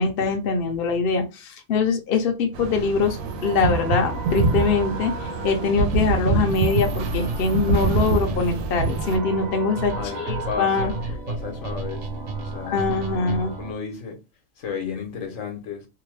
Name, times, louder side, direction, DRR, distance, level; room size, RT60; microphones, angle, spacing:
voice 1, 0.0-3.2 3.4-10.9 12.7-13.5, left 4 dB, 55° left, 0.7 m, -23 dB
sound 1, 2.5-9.2, right 4 dB, 90° right, 1.0 m, -25 dB
sound 2, 3.0-13.7, right 2 dB, 45° right, 0.5 m, -37 dB
sound 3, 5.8-13.7, right 3 dB, 70° right, 1.0 m, -32 dB
voice 2, 10.0-14.2 14.6-15.9, left 6 dB, 75° left, 1.2 m, -34 dB
2.7 x 2.2 x 3.1 m
omnidirectional pair, 1.4 m